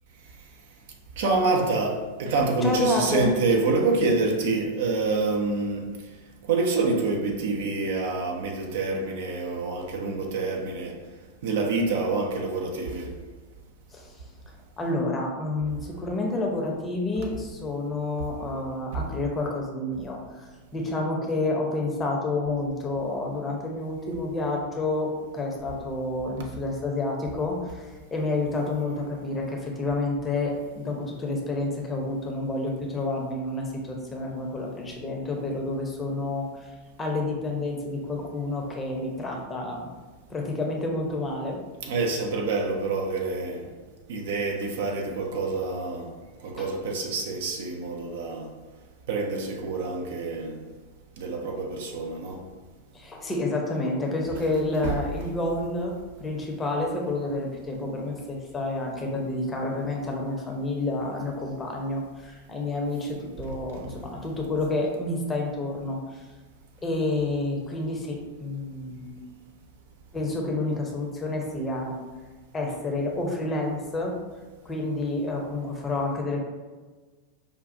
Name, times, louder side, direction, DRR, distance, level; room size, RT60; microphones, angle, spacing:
voice 1, 1.2-5.9 6.4-11.0 11.4-13.2 41.8-43.7 44.1-46.1 46.4-48.5 49.1-50.6 51.2-52.4 54.8-54.9, right 3 dB, 55° right, 0.5 m, -27 dB
voice 2, 2.6-3.3 13.9-14.2 14.8-20.5 20.7-36.7 37.0-39.9 40.3-41.6 46.6-46.7 52.9-66.2 66.8-69.2 70.1-72.0 72.5-74.2 74.6-76.4, left 2 dB, 15° left, 0.7 m, -29 dB
5.0 x 2.3 x 2.6 m
figure-of-eight pair, 90°, 0 cm